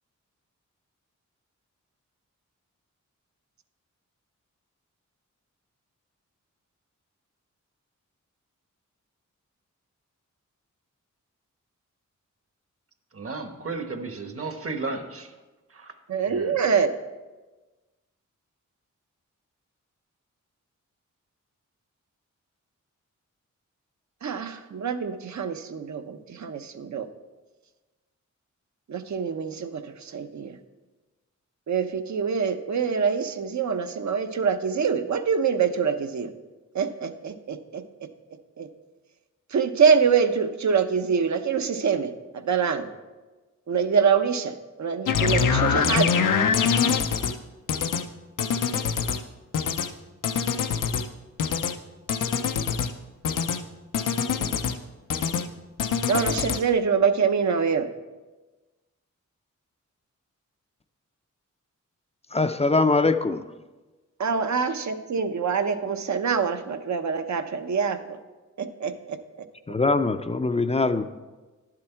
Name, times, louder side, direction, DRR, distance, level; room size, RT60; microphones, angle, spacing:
voice 1, 13.1-15.3 15.7-16.0 16.3-16.6, right 3 dB, 45° right, 1.1 m, -34 dB
voice 2, 16.1-16.9 24.2-27.1 28.9-30.6 31.7-36.3 36.7-37.8 38.6-38.7 39.5-42.9 43.7-46.2 56.1-57.9 64.2-68.2 68.6-69.2, right 6 dB, 65° right, 0.8 m, -25 dB
sound 1, 45.1-47.3 47.7-48.0 48.4-49.2 49.5-49.9 50.2-51.1 51.4-51.7 52.1-52.9 53.2-53.6 53.9-54.8 55.1-55.5 55.8-56.6, left 6 dB, 85° left, 0.6 m, -24 dB
voice 3, 62.3-63.4 69.7-71.1, left 3 dB, 20° left, 0.4 m, -22 dB
10.5 x 7.6 x 4.5 m
wide cardioid pair, 80°, 31 cm